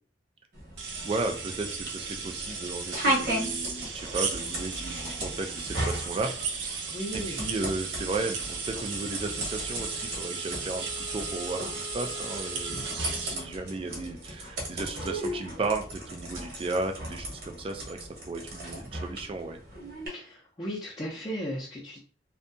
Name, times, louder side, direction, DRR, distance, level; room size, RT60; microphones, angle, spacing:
sound 1, 0.5-20.1, right 1 dB, 55° right, 1.0 m, -36 dB
sound 2, 0.8-13.3, right 5 dB, 90° right, 0.5 m, -36 dB
voice 1, 0.9-6.3 7.1-19.6, right 3 dB, 30° right, 5 dB, 0.3 m, -34 dB
voice 2, 6.9-7.4 20.0-22.0, equal, 25° left, -7 dB, 0.5 m, -36 dB
Wind instrument woodwind instrument, 9.6-14.1, left 6 dB, 90° left, 0.5 m, -46 dB
2.6 x 2.2 x 2.6 m, 0.42 s
head